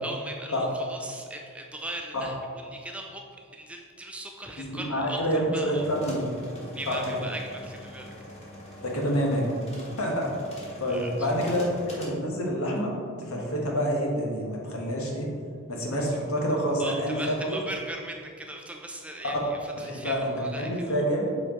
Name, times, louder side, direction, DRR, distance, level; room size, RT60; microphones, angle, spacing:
voice 1, 0.0-3.3 3.5-5.2 5.5-5.9 6.7-8.1 10.9-11.1 16.8-20.7, right 1 dB, 5° right, 1 dB, 0.4 m, -39 dB
voice 2, 4.6-6.4 6.9-7.0 8.8-9.5 10.0-10.3 10.8-15.3 15.7-17.6 19.8-21.3, equal, 90° left, -1 dB, 1.4 m, -27 dB
sound 1, 5.7-12.1, equal, 30° left, 1.5 m, -44 dB
7.7 x 4.6 x 3.8 m, 2.2 s
head